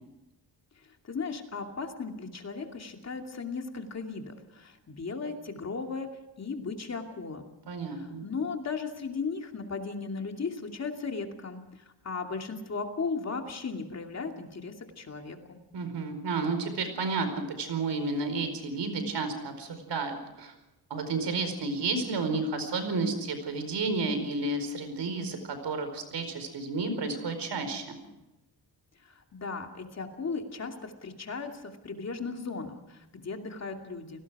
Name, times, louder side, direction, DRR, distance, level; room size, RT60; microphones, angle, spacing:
voice 1, 1.0-6.1 6.4-7.5 7.9-11.6 12.0-15.6 29.2-34.2, left 4 dB, 40° left, 3 dB, 2.6 m, -36 dB
voice 2, 7.7-8.3 15.7-17.3 17.6-20.5 20.9-28.0, right 3 dB, 90° right, 8 dB, 4.7 m, -31 dB
29.5 x 19.0 x 4.9 m, 0.97 s
wide cardioid pair, 160°, 40 cm